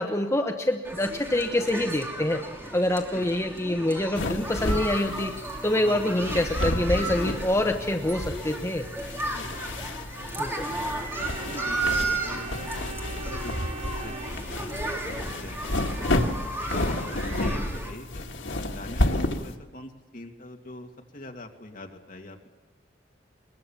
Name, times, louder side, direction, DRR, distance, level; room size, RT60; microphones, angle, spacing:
voice 1, 0.0-2.4 2.7-5.4 5.6-8.8 10.4-10.7, left 1 dB, 15° left, 3 dB, 1.0 m, -26 dB
sound 1, 0.8-17.9, right 2 dB, 15° right, 3.0 m, -34 dB
sound 2, 4.1-19.6, left 1 dB, 90° left, 1.8 m, -31 dB
Organ, 11.2-15.1, right 3 dB, 30° right, 0.8 m, -41 dB
voice 2, 11.5-13.7 14.0-16.1 16.7-22.5, left 1 dB, 45° left, 3 dB, 2.2 m, -43 dB
22.0 x 21.0 x 7.3 m, 1.2 s
head